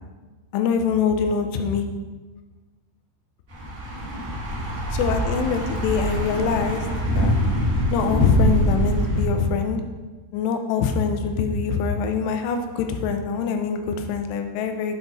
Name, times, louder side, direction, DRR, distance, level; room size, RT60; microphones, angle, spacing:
voice 1, 0.5-1.9 4.9-6.8 7.2-7.4 7.9-9.8 10.3-15.0, left 5 dB, 85° left, 6 dB, 2.9 m, -24 dB
Thunder / Bicycle, 3.5-9.2, equal, 45° right, 1.2 m, -24 dB
8.0 x 4.6 x 5.4 m, 1.3 s
omnidirectional pair, 4.8 m